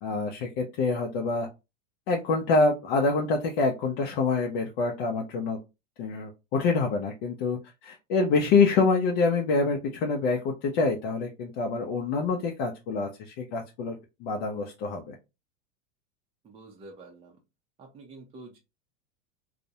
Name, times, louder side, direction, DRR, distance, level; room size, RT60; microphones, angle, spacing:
voice 1, 0.0-1.5 2.1-5.6 6.0-15.1, left 4 dB, 50° left, 1 dB, 0.6 m, -26 dB
voice 2, 16.4-17.4 17.8-18.6, right 2 dB, 15° right, 0 dB, 0.4 m, -48 dB
2.4 x 2.0 x 2.7 m, 0.26 s
supercardioid pair, 130°, 34 cm